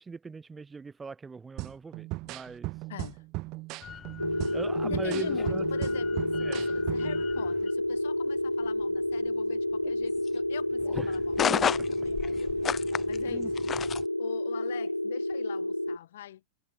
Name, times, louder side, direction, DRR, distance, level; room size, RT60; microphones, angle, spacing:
voice 1, 0.0-2.7 4.5-5.7 6.4-6.6 11.0-11.2 13.3-13.5, right 4 dB, 15° right, 0.6 m, -41 dB
sound 1, 1.6-7.2, right 22 dB, 40° right, 1.8 m, -38 dB
voice 2, 2.9-3.2 4.3-4.6 4.8-13.5 14.2-16.4, left 12 dB, 60° left, 1.8 m, -43 dB
sound 2, 3.8-14.1, left 8 dB, 25° left, 0.8 m, -35 dB
sound 3, 4.2-16.0, left 1 dB, 85° left, 0.5 m, -30 dB
figure-of-eight pair, 90°, 0 cm